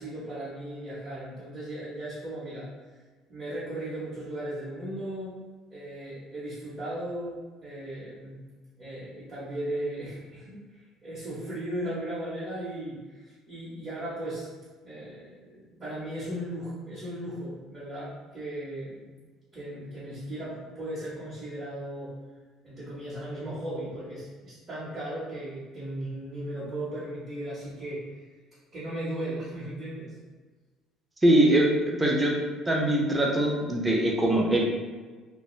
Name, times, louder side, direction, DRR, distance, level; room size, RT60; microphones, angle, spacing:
voice 1, 0.0-2.7 3.3-5.4 5.7-8.4 8.8-14.5 14.8-19.0 19.5-22.1 22.6-28.2 28.7-30.1, right 1 dB, 35° right, -10 dB, 0.9 m, -36 dB
voice 2, 31.2-32.4 32.7-34.6, right 1 dB, 10° right, -1 dB, 0.5 m, -22 dB
2.4 x 2.2 x 3.0 m, 1.3 s
cardioid pair, 130°, 0 cm